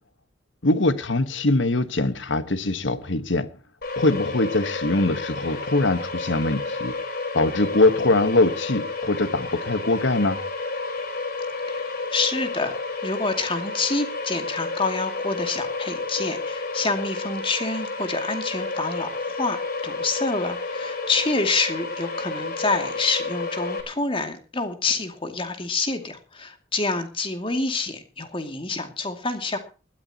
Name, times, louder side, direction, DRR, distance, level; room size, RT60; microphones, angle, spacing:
voice 1, 0.6-3.5 4.0-6.9 7.3-10.4, left 2 dB, 70° left, 1.4 m, -22 dB
sound 1, 3.8-23.8, left 3 dB, 50° left, 4.4 m, -31 dB
voice 2, 12.1-12.7 13.0-19.6 19.8-29.6, left 3 dB, 25° left, 2.4 m, -27 dB
20.5 x 13.5 x 2.9 m
head